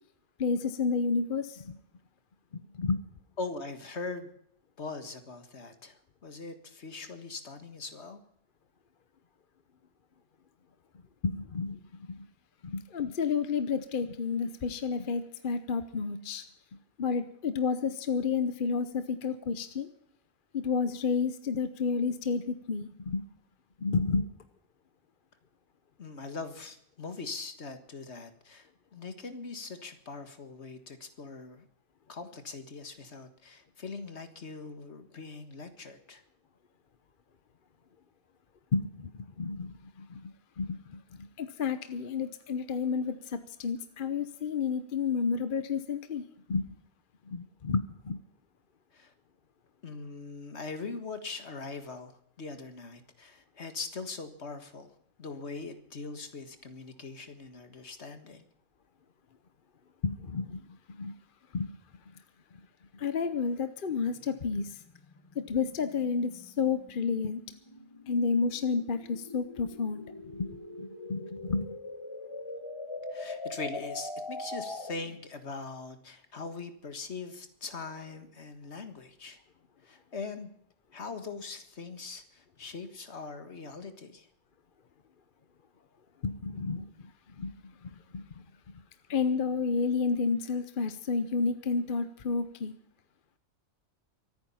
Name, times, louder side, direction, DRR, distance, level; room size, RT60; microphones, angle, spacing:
voice 1, 0.4-1.7 2.7-3.0 11.2-11.8 12.1-12.3 12.6-16.5 17.0-19.9 20.5-23.2 23.8-24.3 38.7-39.1 39.4-40.3 40.6-41.0 41.4-46.2 46.5-46.7 47.3-48.2 60.0-60.6 61.0-61.1 61.5-61.8 62.9-64.8 65.4-67.4 68.1-70.0 70.3-70.5 70.8-71.7 86.2-88.2 89.1-92.7, left 5 dB, 50° left, 11 dB, 1.0 m, -31 dB
voice 2, 3.4-4.3 4.8-8.2 26.0-31.7 32.1-36.2 48.9-49.1 49.8-54.9 55.2-58.5 73.1-79.4 79.8-80.5 80.9-84.3, left 4 dB, 65° left, 9 dB, 1.9 m, -41 dB
sound 1, 63.9-75.2, left 2 dB, 25° left, 1.4 m, -43 dB
24.5 x 9.3 x 5.6 m, 0.70 s
omnidirectional pair, 1.2 m